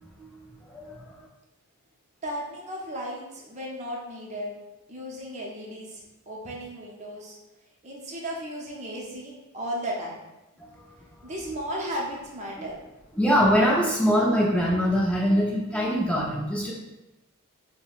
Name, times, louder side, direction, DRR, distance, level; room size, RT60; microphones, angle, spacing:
voice 1, 0.6-1.0 10.8-10.9 11.4-11.6 12.6-12.7 13.2-16.7, equal, 5° left, -5 dB, 0.4 m, -23 dB
voice 2, 2.2-4.6 4.9-7.4 7.8-10.2 11.2-12.8, equal, 30° right, -3 dB, 0.7 m, -35 dB
5.2 x 2.1 x 2.4 m, 1.0 s
head